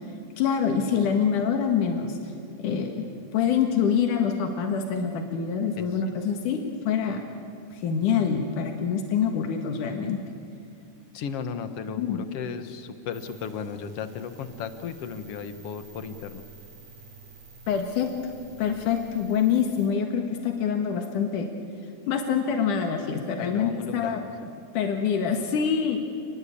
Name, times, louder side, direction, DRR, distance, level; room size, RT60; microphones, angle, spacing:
voice 1, 0.4-2.1 2.6-3.0 3.3-7.2 7.7-10.2 11.9-12.2 17.7-18.1 18.6-21.5 22.1-24.2 24.7-26.0, left 7 dB, 90° left, 4 dB, 3.2 m, -25 dB
voice 2, 11.1-16.4 23.4-24.2, left 6 dB, 55° left, 9 dB, 2.1 m, -35 dB
sound 1, 13.1-19.9, right 4 dB, 70° right, 8.3 m, -50 dB
28.5 x 20.5 x 8.5 m, 2.3 s
omnidirectional pair, 3.5 m